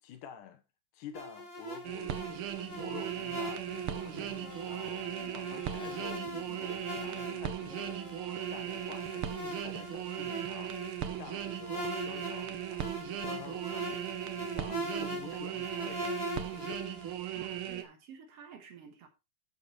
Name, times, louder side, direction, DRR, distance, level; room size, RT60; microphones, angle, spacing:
voice 1, 0.0-0.6 0.9-6.2 6.5-9.3 9.6-10.7 11.1-14.0 14.4-16.3, left 8 dB, 85° left, 2.7 m, -49 dB
sound 1, 1.1-17.1, right 1 dB, 30° left, 0.7 m, -41 dB
sound 2, 1.8-17.8, right 11 dB, 85° right, 1.2 m, -38 dB
sound 3, 3.7-9.5 9.9-10.6 11.0-11.7 12.1-12.7 13.2-13.8 14.3-14.8, left 1 dB, 30° right, 0.5 m, -52 dB
voice 2, 17.4-19.1, right 7 dB, 60° right, 2.0 m, -51 dB
13.0 x 7.4 x 3.1 m
omnidirectional pair, 3.7 m